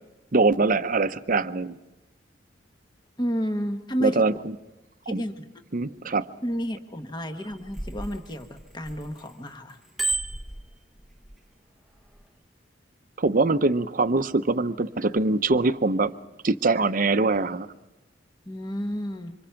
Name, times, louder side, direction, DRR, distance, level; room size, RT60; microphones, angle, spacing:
voice 1, 0.3-1.8 4.0-4.5 5.1-5.2 5.7-6.3 13.2-16.1 16.4-17.7, right 3 dB, 45° right, 0.8 m, -23 dB
voice 2, 3.2-4.2 5.0-5.4 6.4-9.8 18.5-19.3, equal, 25° left, 1.3 m, -31 dB
Bicycle bell, 7.4-9.3 9.7-11.3 12.0-12.2, right 3 dB, ahead, 0.9 m, -32 dB
27.0 x 26.0 x 5.9 m
head